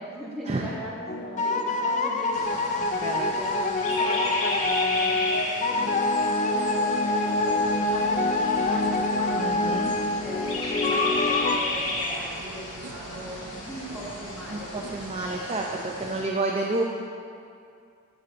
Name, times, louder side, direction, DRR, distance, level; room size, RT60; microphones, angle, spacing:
voice 1, 0.0-2.7 3.1-9.8 10.2-16.3, equal, ahead, -10 dB, 2.3 m, -40 dB
sound 1, 1.1-11.6, left 2 dB, 35° left, 0.4 m, -25 dB
sound 2, 2.3-16.2, left 2 dB, 70° left, 2.2 m, -34 dB
voice 2, 2.8-3.3 9.4-9.9 14.5-16.8, right 2 dB, 30° right, 0 dB, 0.5 m, -30 dB
sound 3, 6.6-15.4, right 4 dB, 80° right, 0.5 m, -44 dB
13.0 x 8.2 x 2.6 m, 2.4 s
head